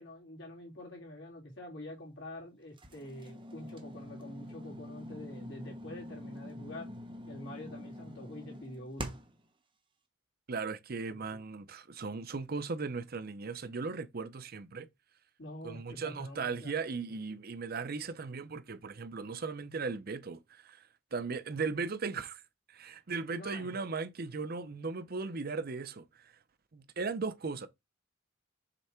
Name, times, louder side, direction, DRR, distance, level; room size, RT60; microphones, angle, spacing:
voice 1, 0.0-6.9 7.3-9.2 11.1-11.2 15.4-16.7 17.1-17.4 23.3-23.7, left 1 dB, 65° left, 3.2 m, -46 dB
sound 1, 2.8-9.4, equal, 25° right, 1.1 m, -45 dB
voice 2, 10.5-14.9 15.6-22.4 22.7-26.2 26.7-27.7, right 4 dB, 50° right, 0.7 m, -37 dB
6.8 x 3.3 x 4.4 m
head